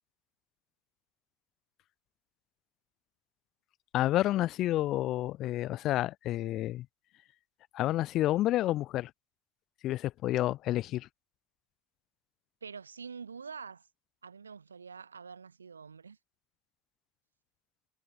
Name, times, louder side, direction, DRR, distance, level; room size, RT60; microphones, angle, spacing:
voice 1, 3.9-6.9 7.7-9.1 9.8-11.1, left 15 dB, 45° left, 1.1 m, -29 dB
voice 2, 12.6-13.9 14.2-16.2, right 5 dB, 80° right, 5.4 m, -46 dB
figure-of-eight pair, 70°, 0 cm